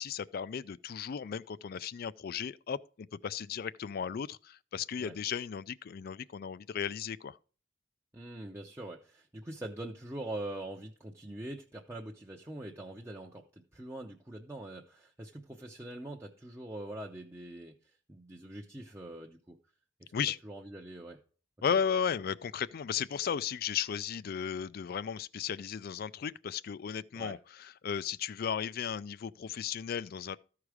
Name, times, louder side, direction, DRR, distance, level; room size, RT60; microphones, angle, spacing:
voice 1, 0.0-7.4 20.1-20.4 21.6-30.4, left 7 dB, 50° left, 0.3 m, -35 dB
voice 2, 8.1-17.7 18.1-19.6 20.0-20.1 20.4-21.2 27.2-27.3, right 1 dB, 15° right, 0.7 m, -43 dB
14.0 x 4.8 x 4.9 m
head